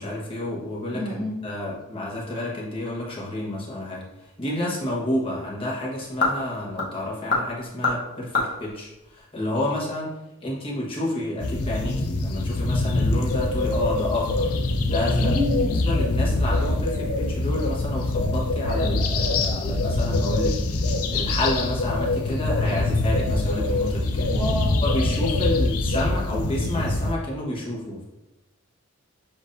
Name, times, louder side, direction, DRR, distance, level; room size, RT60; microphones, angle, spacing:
voice 1, 0.0-10.1 10.4-14.5 14.8-15.3 15.8-24.3 24.8-28.0, left 1 dB, 25° left, -5 dB, 1.1 m, -30 dB
voice 2, 0.9-1.4 15.2-15.8 24.3-24.9, left 2 dB, 5° right, -5 dB, 0.5 m, -29 dB
sound 1, 4.1-9.9, left 3 dB, 55° left, 1.1 m, -30 dB
sound 2, 11.4-27.1, left 2 dB, 90° left, 0.5 m, -24 dB
7.1 x 2.6 x 2.6 m, 0.99 s
head